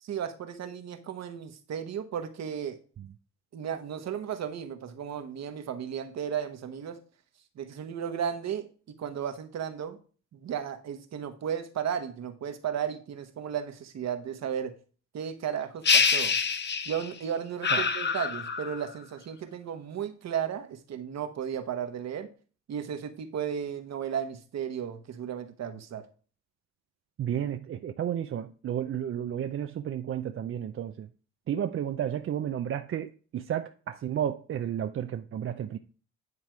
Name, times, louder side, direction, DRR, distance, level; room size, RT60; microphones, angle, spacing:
voice 1, 0.0-2.8 3.5-7.0 7.6-10.0 10.3-14.7 15.1-16.4 16.8-22.3 22.7-26.1, right 8 dB, 60° right, 1.1 m, -34 dB
sound 1, 15.8-17.2 17.6-18.9, left 5 dB, 35° left, 0.8 m, -26 dB
voice 2, 27.2-31.1 31.5-35.8, right 10 dB, 45° right, 0.5 m, -32 dB
9.6 x 3.4 x 4.5 m
cardioid pair, 90°, 30 cm